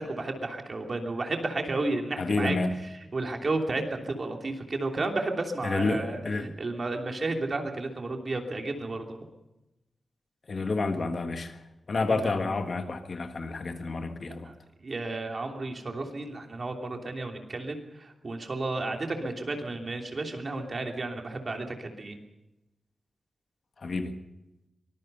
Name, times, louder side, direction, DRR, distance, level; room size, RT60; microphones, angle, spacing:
voice 1, 0.0-2.6 3.1-6.2 6.6-9.2 12.1-12.5 14.4-14.5 14.8-22.2, right 2 dB, 40° right, 3.1 m, -32 dB
voice 2, 2.2-2.7 5.6-6.5 10.5-11.6 11.9-14.5 23.8-24.1, left 3 dB, 45° left, 1.6 m, -29 dB
24.0 x 20.5 x 5.6 m
wide cardioid pair, 160°, 0 cm